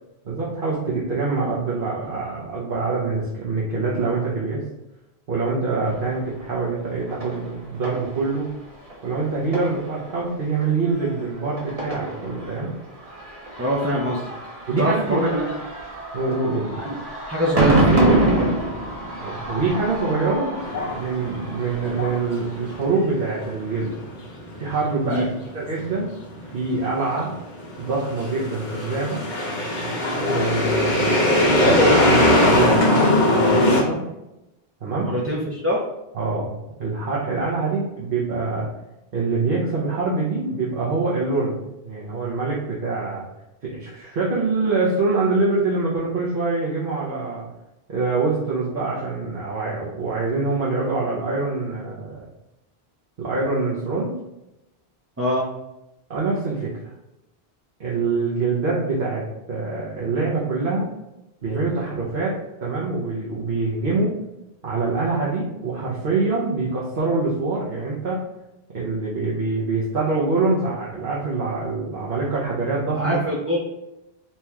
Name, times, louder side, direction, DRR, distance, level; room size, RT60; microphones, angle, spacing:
voice 1, 0.2-4.6 5.3-8.5 9.0-12.7 14.7-15.4 16.1-16.8 19.2-23.9 24.6-25.2 25.5-26.1 26.4-27.3 27.8-29.2 30.3-34.0 34.8-35.1 36.1-38.7 39.1-41.6 41.8-43.3 43.6-47.4 47.9-52.2 53.2-54.1 56.1-56.9 57.8-60.9 61.4-64.2 64.6-68.2 68.7-73.1, right 3 dB, 60° right, -6 dB, 1.1 m, -25 dB
sound 1, 5.9-22.8, right 2 dB, 35° right, 1.0 m, -27 dB
voice 2, 13.6-14.3 14.8-15.5 16.8-17.0 17.3-18.6 25.0-25.4 35.0-35.8 55.2-55.5 72.9-73.6, equal, 15° right, -5 dB, 0.6 m, -24 dB
sound 2, 20.6-21.5 21.9-33.8, left 1 dB, 50° left, 1.0 m, -20 dB
4.3 x 3.0 x 3.5 m, 0.93 s
omnidirectional pair, 1.1 m